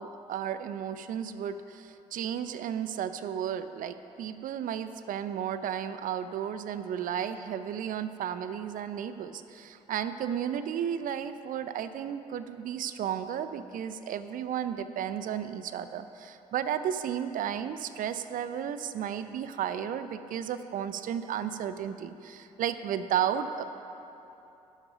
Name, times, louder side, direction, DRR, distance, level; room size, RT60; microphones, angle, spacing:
voice 1, 0.0-23.6, right 9 dB, 55° right, 11 dB, 0.6 m, -33 dB
12.0 x 8.7 x 4.9 m, 2.9 s
figure-of-eight pair, 45°, 17 cm